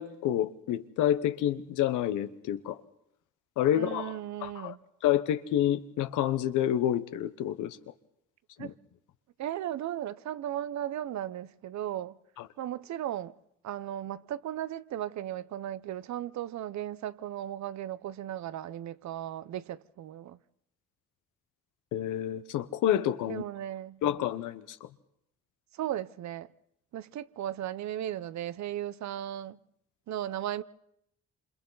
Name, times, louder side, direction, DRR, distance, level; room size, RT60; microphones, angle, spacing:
voice 1, 0.0-2.8 3.6-4.7 5.0-7.8 8.6-8.7 21.9-23.4 24.0-24.8, left 11 dB, 90° left, 1.0 m, -28 dB
voice 2, 3.7-4.8 8.6-8.7 9.4-12.2 12.6-13.3 13.6-20.4 23.3-24.0 25.7-26.5 26.9-29.6 30.1-30.6, right 11 dB, 65° right, 0.7 m, -36 dB
27.5 x 26.5 x 4.0 m
cardioid pair, 90°, 30 cm